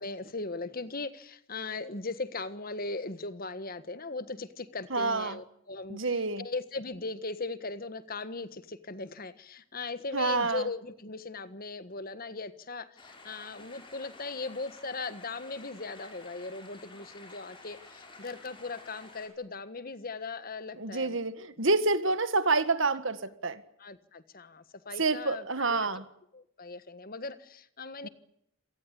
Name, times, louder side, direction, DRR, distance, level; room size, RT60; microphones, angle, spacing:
voice 1, 0.0-21.2 23.8-25.9 26.3-28.1, left 3 dB, 45° left, 13 dB, 1.5 m, -39 dB
voice 2, 4.9-5.4 5.9-6.5 10.1-10.7 20.8-23.6 25.0-26.0 28.0-28.1, right 3 dB, 60° right, 12 dB, 1.8 m, -28 dB
sound 1, 13.0-19.3, left 2 dB, 25° left, 6.4 m, -51 dB
27.5 x 18.5 x 8.4 m, 0.74 s
head